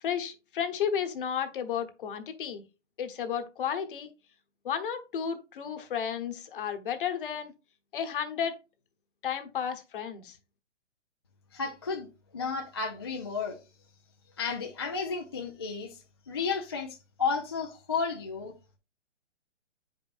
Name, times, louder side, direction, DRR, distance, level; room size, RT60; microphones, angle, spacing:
voice 1, 0.0-2.6 3.0-4.1 4.6-7.5 7.9-8.6 9.2-10.4, left 8 dB, 45° left, 1.1 m, -33 dB
voice 2, 11.5-13.6 14.4-18.5, left 5 dB, 25° left, 0.4 m, -33 dB
8.4 x 5.3 x 2.5 m
hypercardioid pair, 150°, 36 cm